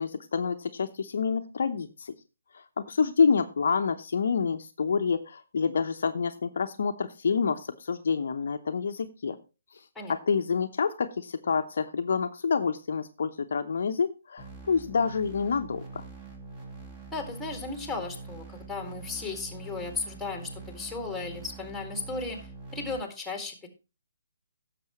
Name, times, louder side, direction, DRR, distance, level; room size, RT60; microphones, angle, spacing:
voice 1, 0.0-2.1 2.9-9.4 10.1-16.0, left 5 dB, 55° left, 7 dB, 0.7 m, -27 dB
sound 1, 14.4-23.0, right 3 dB, 20° right, 2.7 m, -44 dB
voice 2, 17.1-23.7, left 3 dB, ahead, 5 dB, 2.0 m, -35 dB
16.0 x 6.8 x 3.0 m, 0.30 s
figure-of-eight pair, 135°, 0 cm